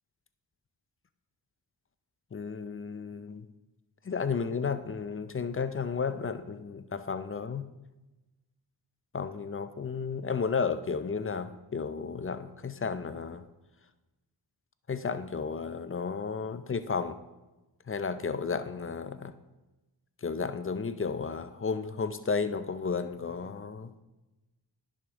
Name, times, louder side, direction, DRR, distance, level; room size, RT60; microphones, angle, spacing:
voice 1, 2.3-3.5 4.0-7.7 9.1-13.4 14.9-17.2 17.9-19.3 20.2-23.9, left 5 dB, 30° left, 12 dB, 0.6 m, -33 dB
10.5 x 6.4 x 3.6 m, 1.1 s
cardioid pair, 50°, 44 cm